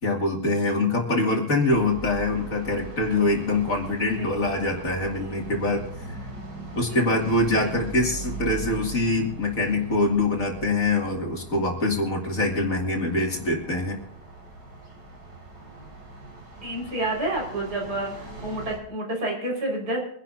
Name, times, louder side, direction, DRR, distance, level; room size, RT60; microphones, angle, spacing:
voice 1, 0.0-5.8 6.1-6.2 6.8-14.0, left 2 dB, 50° left, 0 dB, 2.9 m, -24 dB
sound 1, 1.7-18.8, right 3 dB, 80° right, 3.8 m, -40 dB
voice 2, 7.5-7.8 16.6-20.0, right 1 dB, 60° right, -1 dB, 5.5 m, -29 dB
25.0 x 11.5 x 2.7 m, 0.71 s
omnidirectional pair, 1.9 m